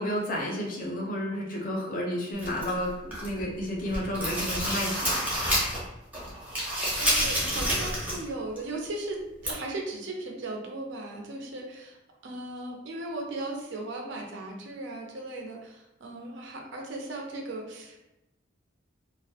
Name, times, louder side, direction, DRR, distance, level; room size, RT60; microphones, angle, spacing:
voice 1, 0.0-5.2, equal, 40° left, -2 dB, 0.5 m, -31 dB
sound 1, 2.4-3.4 3.8-5.9 6.1-8.3 8.6-8.7 9.4-9.5, equal, 5° right, 0.6 m, -28 dB
voice 2, 6.5-18.1, right 2 dB, 65° right, 0 dB, 0.4 m, -37 dB
2.2 x 2.0 x 2.7 m, 0.92 s
head